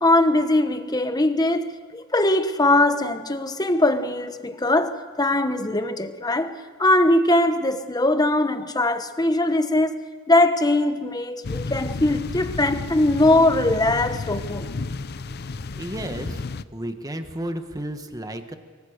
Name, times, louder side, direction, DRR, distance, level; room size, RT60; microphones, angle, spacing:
voice 1, 0.0-10.0 10.3-14.7, left 1 dB, 20° left, 1.2 m, -21 dB
sound 1, 11.4-16.6, left 3 dB, 50° left, 0.6 m, -32 dB
voice 2, 15.7-16.4 16.7-18.6, right 1 dB, 20° right, 1.5 m, -32 dB
24.0 x 23.5 x 6.7 m
head